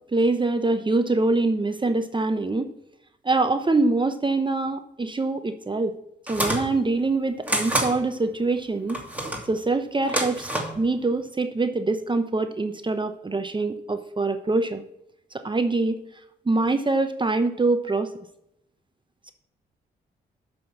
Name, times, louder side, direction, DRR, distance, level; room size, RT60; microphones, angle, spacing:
voice 1, 0.1-2.7 3.2-6.0 6.3-9.0 9.5-10.5 10.7-14.8 15.3-16.0 16.5-18.1, right 3 dB, 25° right, 8 dB, 0.9 m, -24 dB
sound 1, 6.3-6.7 7.5-7.9 8.9-9.5 10.0-10.8, right 1 dB, 10° right, 2.6 m, -27 dB
7.5 x 6.0 x 7.1 m, 0.81 s
supercardioid pair, 55°, 19 cm